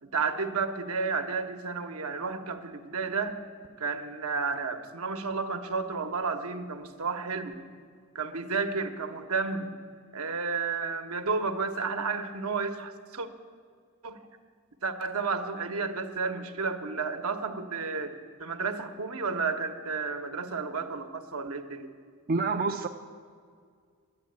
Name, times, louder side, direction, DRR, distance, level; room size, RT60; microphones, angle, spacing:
voice 1, 0.0-3.4 3.8-7.5 8.1-9.7 10.1-13.3 14.0-14.2 14.8-21.9, right 4 dB, 75° right, 6 dB, 1.1 m, -32 dB
voice 2, 22.3-22.9, right 4 dB, 40° right, 3 dB, 0.5 m, -27 dB
11.5 x 9.5 x 9.5 m, 2.1 s
head